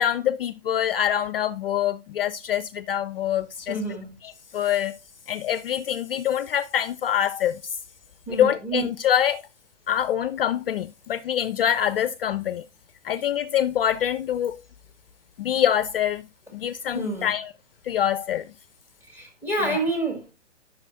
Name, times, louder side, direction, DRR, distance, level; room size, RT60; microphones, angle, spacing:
voice 1, 0.0-3.8 4.2-5.0 5.3-7.8 8.3-9.4 9.9-12.6 13.0-14.6 15.4-16.2 16.5-17.5 17.8-18.4 19.6-19.8, left 10 dB, 55° left, 0.4 m, -25 dB
voice 2, 3.7-4.1 8.3-8.9 16.9-17.3 19.1-20.2, right 2 dB, 5° right, 1.9 m, -28 dB
11.0 x 6.3 x 2.5 m
figure-of-eight pair, 130°, 36 cm